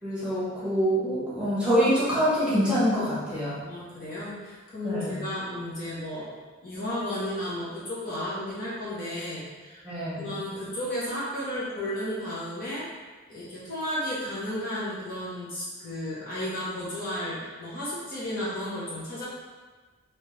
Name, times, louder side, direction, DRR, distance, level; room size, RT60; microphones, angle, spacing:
voice 1, 0.0-3.6 4.8-5.2 9.8-10.4, equal, 5° right, -11 dB, 1.1 m, -25 dB
voice 2, 3.6-6.3 6.6-9.8 10.2-12.9 13.3-19.2, left 1 dB, 40° left, -8 dB, 0.9 m, -33 dB
3.3 x 2.9 x 3.2 m, 1.3 s
head